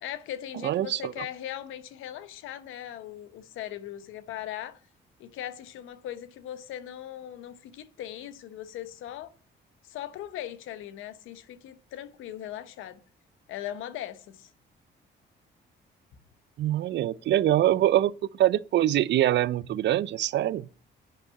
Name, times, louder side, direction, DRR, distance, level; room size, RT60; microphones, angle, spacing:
voice 1, 0.0-4.8 5.2-9.3 9.8-13.0 13.5-14.5, left 11 dB, 90° left, 1.0 m, -39 dB
voice 2, 0.6-1.1 16.6-20.7, right 13 dB, 65° right, 0.5 m, -24 dB
8.7 x 5.5 x 6.3 m
cardioid pair, 90°, 20 cm